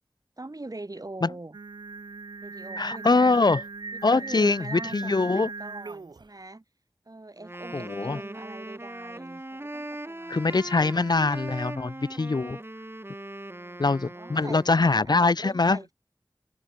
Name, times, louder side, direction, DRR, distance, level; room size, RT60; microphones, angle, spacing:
voice 1, 0.4-1.6 2.4-3.4 3.9-6.6 7.1-10.5 13.4-15.9, right 2 dB, 50° right, 5.9 m, -43 dB
Singing, 1.5-6.3, right 4 dB, 70° right, 0.5 m, -38 dB
voice 2, 2.8-3.6 4.0-5.5 7.7-8.2 10.3-12.6 13.8-15.8, left 3 dB, 65° left, 0.7 m, -23 dB
Wind instrument woodwind instrument, 7.4-15.1, right 1 dB, 30° right, 3.3 m, -40 dB
open air
wide cardioid pair, 55°, 8 cm